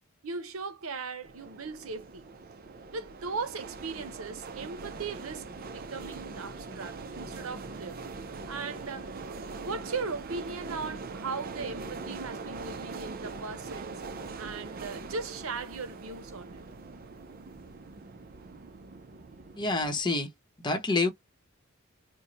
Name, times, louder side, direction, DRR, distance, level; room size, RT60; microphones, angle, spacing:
voice 1, 0.2-2.3 2.9-9.1 9.6-16.6, right 4 dB, 85° right, 0.7 m, -38 dB
sound 1, 1.2-20.0, right 3 dB, 45° right, 0.5 m, -42 dB
voice 2, 19.6-20.3 20.6-21.1, left 3 dB, 20° left, 0.9 m, -27 dB
3.1 x 2.2 x 3.9 m
head